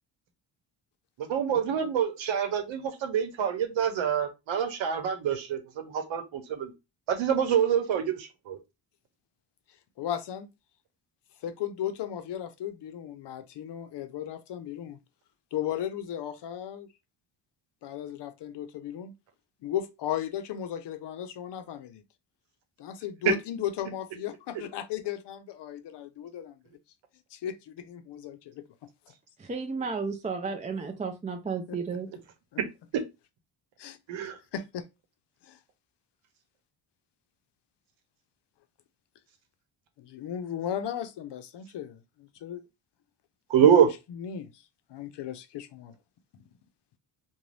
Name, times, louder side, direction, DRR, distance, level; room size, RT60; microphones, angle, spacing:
voice 1, 1.2-6.7 7.1-8.6 23.2-23.3 32.6-32.7 34.1-34.4 43.5-43.9, right 8 dB, 75° right, 0.9 m, -25 dB
voice 2, 10.0-10.5 11.4-15.0 15.5-16.9 17.8-19.1 19.6-22.0 22.8-26.6 27.3-28.7 31.7-31.8 32.5-32.6 33.8-34.9 35.4-35.6 40.0-42.6 44.1-44.6 44.9-46.0, left 10 dB, 60° left, 0.6 m, -36 dB
voice 3, 29.4-32.1, right 5 dB, 15° right, 0.4 m, -33 dB
2.5 x 2.3 x 3.2 m
cardioid pair, 85°, 46 cm